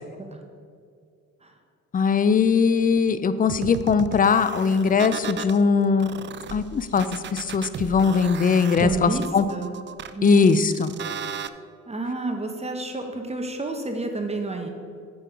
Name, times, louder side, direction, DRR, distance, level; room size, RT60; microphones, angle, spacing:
voice 1, 1.9-6.1 6.5-9.4 10.2-10.9, left 5 dB, 30° left, 12 dB, 0.5 m, -20 dB
sound 1, 3.5-5.6 6.0-11.5, right 8 dB, 40° right, 0.4 m, -35 dB
voice 2, 8.8-9.2 9.5-9.7 10.1-10.7 11.3-11.5 11.9-14.7, right 2 dB, 20° right, 4 dB, 1.0 m, -30 dB
7.7 x 6.4 x 5.1 m, 2.2 s
cardioid pair, 90°, 30 cm